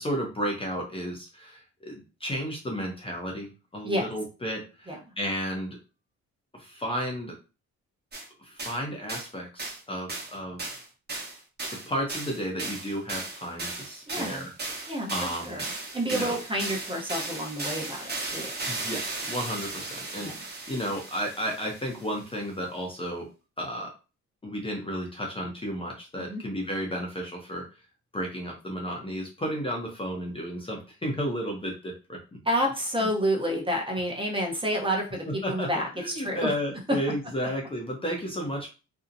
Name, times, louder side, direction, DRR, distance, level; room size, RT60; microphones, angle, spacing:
voice 1, 0.0-5.8 6.5-7.3 8.4-10.8 11.7-14.5 14.7-15.6 16.1-16.4 18.7-23.3 23.6-23.9 24.4-27.6 28.1-32.4 33.0-33.1 35.2-38.7, equal, 20° left, 0 dB, 0.6 m, -33 dB
analog hi hat, 8.1-8.3 8.6-8.8 9.1-9.3 9.6-9.8 10.1-10.3 10.6-22.1, right 3 dB, 35° right, 1.0 m, -36 dB
voice 2, 14.1-14.5 14.9-15.1 15.4-15.6 15.9-18.5 20.2-20.4 26.3-26.4 32.4-36.5, equal, 15° right, 0 dB, 0.7 m, -29 dB
2.6 x 2.0 x 2.5 m, 0.32 s
cardioid pair, 90°, 30 cm